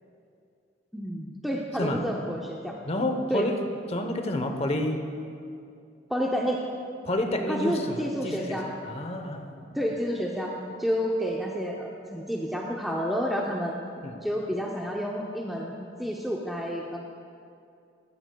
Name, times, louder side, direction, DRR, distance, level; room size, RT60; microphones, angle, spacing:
voice 1, 0.9-2.7 3.3-3.5 6.1-6.6 7.5-8.7 9.7-10.5 10.8-13.7 14.2-17.0, equal, ahead, -2 dB, 0.6 m, -29 dB
voice 2, 2.8-3.6 3.9-5.1 7.0-8.6 8.8-9.7 14.0-14.2, left 1 dB, 35° left, 5 dB, 0.8 m, -29 dB
14.5 x 13.0 x 2.2 m, 2.5 s
head